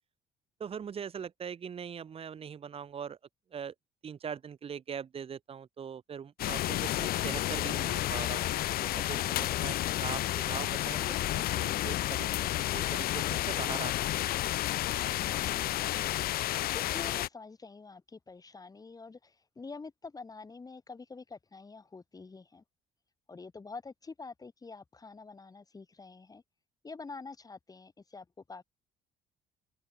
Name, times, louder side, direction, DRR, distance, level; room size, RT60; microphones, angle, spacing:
voice 1, 0.6-3.2 3.5-3.7 4.0-14.3, right 7 dB, 35° right, 1.1 m, -42 dB
sound 1, 6.4-17.3, left 15 dB, 65° left, 0.6 m, -31 dB
voice 2, 15.3-16.1 16.7-22.6 23.3-26.4 26.8-28.6, left 4 dB, 20° left, 2.8 m, -47 dB
open air
cardioid pair, 110°, 17 cm